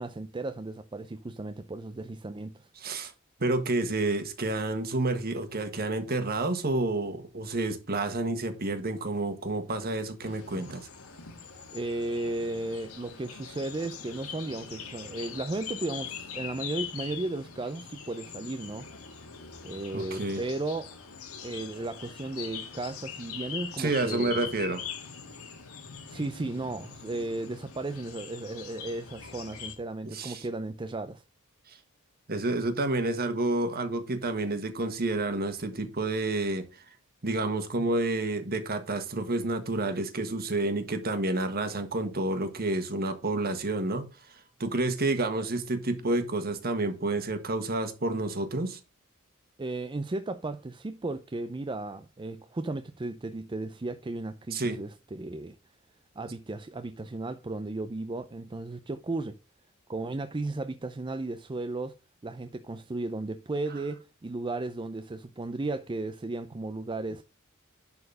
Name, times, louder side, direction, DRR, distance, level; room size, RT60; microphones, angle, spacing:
voice 1, 0.0-2.7 11.7-18.9 19.6-20.9 21.4-24.5 26.1-31.2 49.6-55.5 56.2-59.4 59.9-61.9 62.2-67.2, right 2 dB, 25° right, 0.5 m, -35 dB
voice 2, 2.8-3.1 3.4-10.9 19.9-20.4 23.8-24.8 30.0-30.4 31.7-31.8 32.3-36.7 37.2-48.8 54.5-54.8, right 2 dB, 45° right, 1.6 m, -29 dB
sound 1, 10.2-29.7, left 7 dB, 85° left, 1.9 m, -42 dB
11.0 x 4.4 x 5.5 m
head